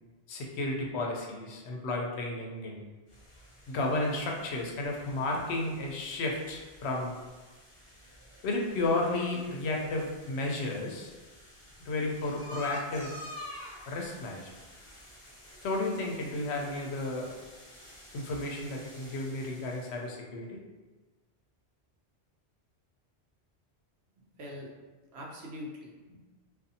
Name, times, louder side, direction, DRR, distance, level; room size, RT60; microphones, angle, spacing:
voice 1, 0.3-2.8 3.7-7.2 8.4-11.1 11.9-13.1 13.9-14.5 15.6-17.3 18.1-20.6, left 2 dB, 75° left, 0 dB, 0.8 m, -33 dB
sound 1, 3.1-20.1, left 1 dB, 40° left, 0.5 m, -49 dB
voice 2, 24.2-24.7 25.1-26.3, left 1 dB, 75° right, -1 dB, 0.8 m, -44 dB
2.5 x 2.3 x 2.6 m, 1.3 s
omnidirectional pair, 1.1 m